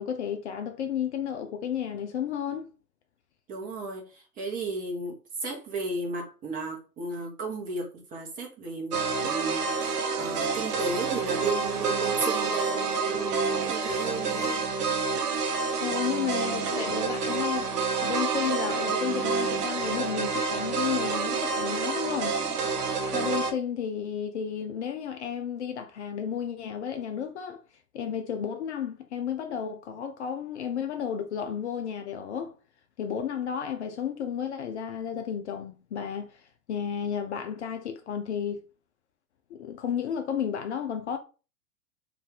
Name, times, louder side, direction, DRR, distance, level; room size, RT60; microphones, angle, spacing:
voice 1, 0.0-2.7 15.8-17.7 18.0-22.4 23.1-27.6 27.9-32.5 33.0-38.6 39.5-41.2, left 8 dB, 45° left, 0.5 m, -32 dB
voice 2, 3.5-5.1 5.4-14.6, right 3 dB, 20° right, 0.7 m, -34 dB
sound 1, 8.9-23.5, right 4 dB, 70° right, 0.8 m, -28 dB
2.6 x 2.4 x 3.6 m
figure-of-eight pair, 110°, 48 cm